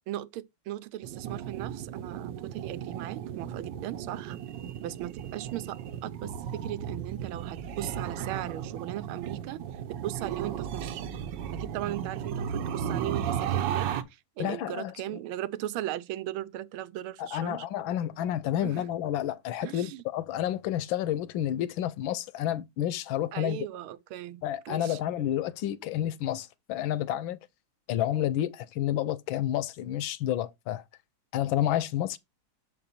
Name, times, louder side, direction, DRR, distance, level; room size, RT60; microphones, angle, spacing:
voice 1, 0.1-4.4 4.8-5.8 6.0-9.6 9.9-11.0 11.5-17.6 18.6-18.8 19.6-20.0 23.3-25.0, right 13 dB, 85° right, 1.5 m, -37 dB
sound 1, 1.0-14.0, right 9 dB, 70° right, 1.3 m, -35 dB
voice 2, 14.4-14.9 17.2-23.6 24.4-27.4 27.9-30.8 31.3-32.2, left 12 dB, 80° left, 1.3 m, -30 dB
6.9 x 4.9 x 4.1 m
omnidirectional pair, 2.3 m